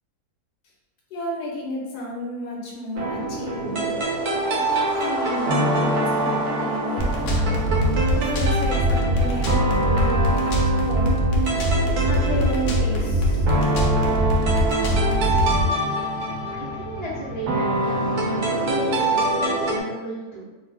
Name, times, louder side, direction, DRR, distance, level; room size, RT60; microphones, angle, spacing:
voice 1, 1.1-3.9 4.4-7.5 8.1-11.2 12.0-13.4, left 1 dB, 85° left, -3 dB, 1.3 m, -32 dB
sound 1, 2.9-19.8, right 2 dB, 75° right, 1.1 m, -25 dB
sound 2, 7.0-15.6, equal, 70° left, 0.9 m, -22 dB
voice 2, 16.5-20.4, right 2 dB, 35° right, -10 dB, 0.4 m, -34 dB
2.9 x 2.0 x 3.3 m, 1.2 s
omnidirectional pair, 1.6 m